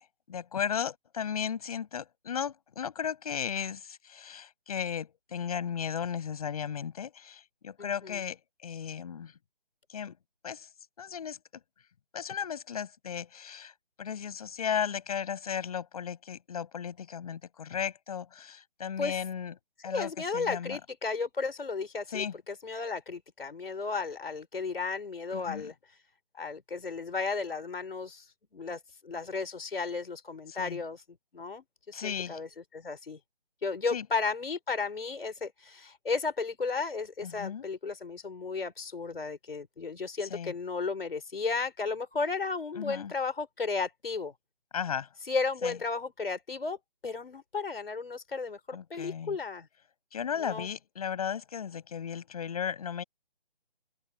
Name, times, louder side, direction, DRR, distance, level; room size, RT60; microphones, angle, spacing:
voice 1, 0.0-9.3 9.9-10.2 10.4-10.7 11.0-11.4 12.1-13.7 14.0-19.5 19.8-20.8 22.1-22.4 25.3-25.7 30.5-30.8 31.9-32.4 33.9-34.1 37.2-37.7 40.3-40.5 42.7-43.1 44.7-45.1 45.6-45.8 48.7-49.4 50.1-53.0, left 8 dB, 40° left, 7.0 m, -35 dB
voice 2, 7.8-8.2 19.0-19.2 19.9-26.0 26.3-31.0 31.3-32.5 32.7-33.2 33.6-44.3 45.2-46.8 47.0-49.7 50.4-50.7, left 4 dB, 75° left, 4.1 m, -34 dB
open air
hypercardioid pair, 165°, 29 cm